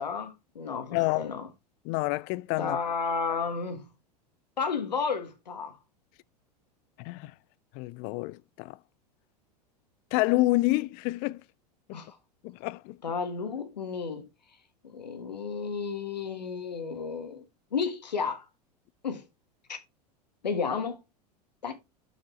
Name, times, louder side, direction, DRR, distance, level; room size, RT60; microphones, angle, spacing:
voice 1, 0.0-1.5 2.6-3.9 4.6-5.8 11.9-12.2 13.0-14.3 14.8-17.5 17.7-18.5 19.0-19.2 19.7-19.8 20.4-21.0 21.6-21.7, left 5 dB, 85° left, 1.6 m, -32 dB
voice 2, 0.9-1.3 1.8-2.8 7.0-7.3 7.7-8.8 10.1-11.4 11.9-12.0 12.4-13.0, left 20 dB, 45° left, 0.4 m, -28 dB
6.5 x 6.0 x 4.2 m
hypercardioid pair, 90°, 21 cm